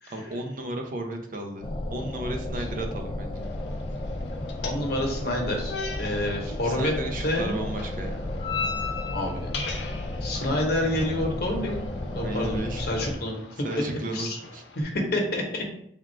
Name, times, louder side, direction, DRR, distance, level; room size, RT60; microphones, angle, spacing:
voice 1, 0.1-3.5 6.5-8.4 12.1-12.9 13.6-14.6, right 1 dB, 50° right, 3 dB, 0.6 m, -34 dB
sound 1, 1.6-13.1, left 1 dB, 30° left, 0.3 m, -33 dB
sound 2, 3.3-14.8, left 4 dB, 85° left, 0.7 m, -39 dB
voice 2, 4.6-6.9 7.2-7.6 9.1-9.5 10.2-11.8 12.1-13.4 14.1-14.4 14.7-15.7, left 1 dB, 60° left, 1 dB, 1.0 m, -28 dB
3.6 x 2.4 x 4.4 m, 0.71 s
head